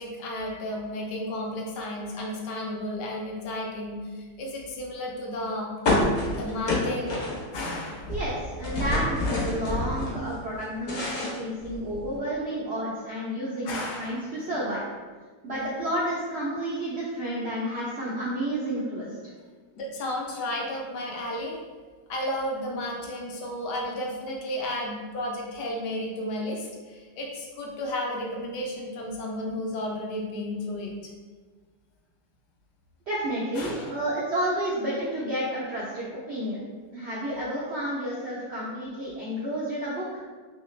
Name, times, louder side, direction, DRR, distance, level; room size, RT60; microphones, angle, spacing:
voice 1, 0.0-5.7 6.3-7.2 7.5-8.1 13.6-14.2 19.8-21.6 22.1-31.1 33.6-33.9, left 1 dB, 75° left, 0 dB, 1.2 m, -33 dB
sound 1, 5.9-7.7 8.0-10.1 10.5-12.1, left 2 dB, 55° left, 1.0 m, -27 dB
voice 2, 8.1-14.8 15.4-19.1 33.1-36.6 36.9-40.1, right 1 dB, 70° right, -7 dB, 0.6 m, -30 dB
3.2 x 2.8 x 3.1 m, 1.4 s
omnidirectional pair, 1.9 m